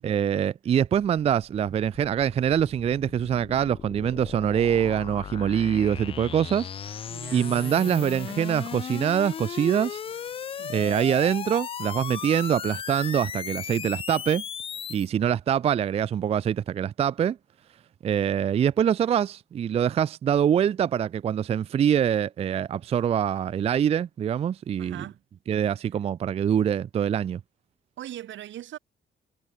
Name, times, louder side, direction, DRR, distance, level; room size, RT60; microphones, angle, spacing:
voice 1, 0.0-6.9 7.3-10.0 10.7-14.4 14.9-17.4 18.0-25.0 25.5-27.4, right 9 dB, 35° right, 0.4 m, -24 dB
sound 1, 1.0-15.1, left 8 dB, 30° left, 0.4 m, -37 dB
voice 2, 7.1-7.9 10.6-11.0 24.8-25.2 28.0-28.8, right 12 dB, 85° right, 3.7 m, -41 dB
cardioid pair, 175°, 19 cm